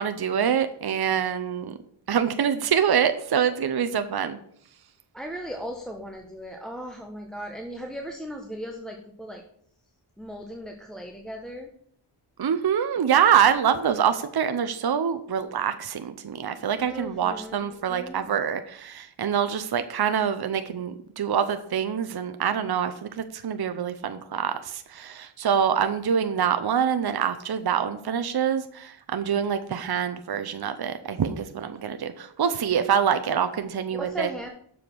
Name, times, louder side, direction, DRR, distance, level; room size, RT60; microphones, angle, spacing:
voice 1, 0.0-1.7 2.1-4.4 12.4-34.3, right 8 dB, 50° right, 10 dB, 0.7 m, -25 dB
voice 2, 5.1-9.4 10.2-11.7 16.8-18.3 34.0-34.5, equal, ahead, 2 dB, 1.0 m, -37 dB
6.9 x 5.0 x 6.0 m, 0.65 s
wide cardioid pair, 55°, 49 cm